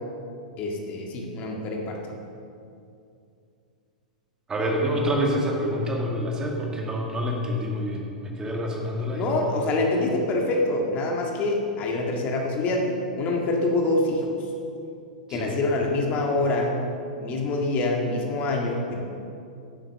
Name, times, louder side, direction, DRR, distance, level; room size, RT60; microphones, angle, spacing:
voice 1, 0.6-2.0 9.1-12.9 13.2-14.3 15.3-16.8 17.2-19.0, left 2 dB, 35° left, 0 dB, 1.9 m, -25 dB
voice 2, 4.5-9.4 15.3-15.5, equal, 15° right, 0 dB, 2.1 m, -27 dB
11.0 x 8.9 x 6.8 m, 2.6 s
figure-of-eight pair, 100°, 4 cm